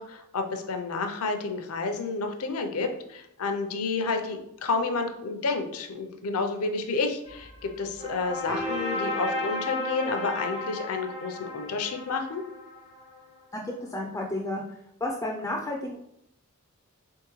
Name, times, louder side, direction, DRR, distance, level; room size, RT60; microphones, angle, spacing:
voice 1, 0.0-12.4, left 3 dB, 75° left, 5 dB, 0.5 m, -30 dB
sound 1, 7.3-13.2, left 1 dB, 85° right, 1.4 m, -34 dB
voice 2, 13.5-14.6 15.0-16.0, left 1 dB, 15° left, 0 dB, 0.3 m, -31 dB
3.5 x 3.4 x 3.0 m, 0.79 s
head